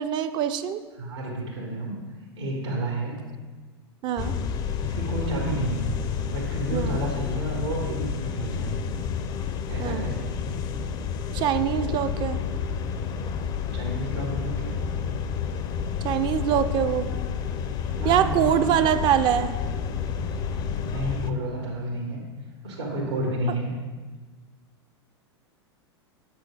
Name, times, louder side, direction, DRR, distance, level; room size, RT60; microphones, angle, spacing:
voice 1, 0.0-0.8 4.0-4.3 6.7-7.0 9.8-10.0 11.3-12.4 16.0-17.1 18.0-19.6, right 9 dB, 35° right, 10 dB, 0.4 m, -24 dB
voice 2, 0.9-1.9 2.4-3.2 4.8-8.7 9.7-10.3 13.7-14.7 18.0-18.7 20.9-22.2 22.6-23.7, right 1 dB, 85° right, -4 dB, 1.6 m, -31 dB
sound 1, 4.2-21.3, left 6 dB, 30° left, 0.4 m, -30 dB
7.2 x 6.1 x 3.4 m, 1.3 s
figure-of-eight pair, 95°, 14 cm